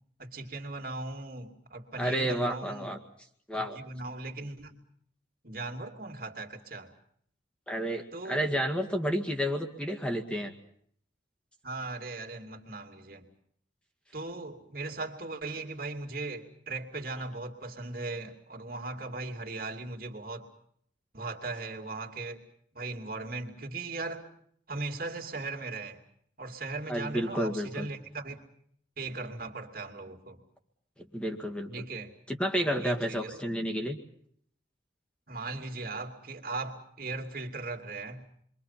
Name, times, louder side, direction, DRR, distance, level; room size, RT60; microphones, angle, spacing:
voice 1, 0.2-3.0 3.5-4.8 5.4-6.9 8.1-8.4 11.6-13.3 14.1-20.5 21.1-22.4 22.7-24.2 24.7-26.0 26.4-28.5 29.0-30.4 31.7-32.1 32.7-33.4 35.3-38.3, right 3 dB, 50° right, 4 dB, 3.0 m, -38 dB
voice 2, 2.0-3.0 3.5-3.8 7.7-10.5 26.9-27.9 31.1-31.7 32.3-34.0, equal, 5° left, 3 dB, 2.0 m, -31 dB
29.5 x 23.5 x 5.9 m, 0.66 s
head